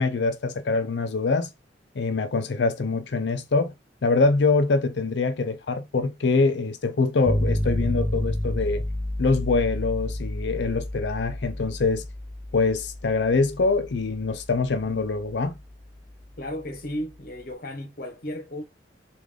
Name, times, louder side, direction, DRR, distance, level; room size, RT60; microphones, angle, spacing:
voice 1, 0.0-1.5 2.0-3.7 4.0-8.8 9.2-12.0 12.5-15.6, left 3 dB, 70° left, 0.5 m, -24 dB
sound 1, 7.3-17.1, left 1 dB, 10° left, 0.5 m, -31 dB
voice 2, 16.4-18.6, left 1 dB, 50° left, 0.9 m, -34 dB
3.6 x 2.5 x 3.3 m
head